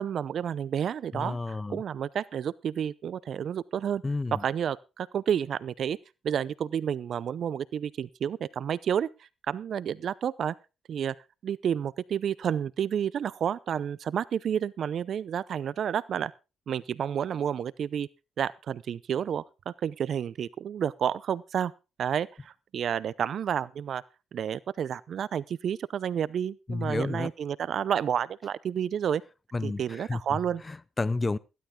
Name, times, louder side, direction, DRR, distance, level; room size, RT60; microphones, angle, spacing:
voice 1, 0.0-4.0 4.3-6.0 6.2-9.1 9.5-10.6 10.9-11.2 11.4-16.3 16.7-18.1 18.4-21.7 22.0-24.0 24.3-29.2 29.6-30.6, right 8 dB, 60° right, 0.6 m, -30 dB
voice 2, 1.1-1.8 4.0-4.4 26.7-27.3 29.5-30.2 30.7-31.4, left 3 dB, 25° left, 0.7 m, -31 dB
15.5 x 12.0 x 3.7 m
cardioid pair, 90°, 0 cm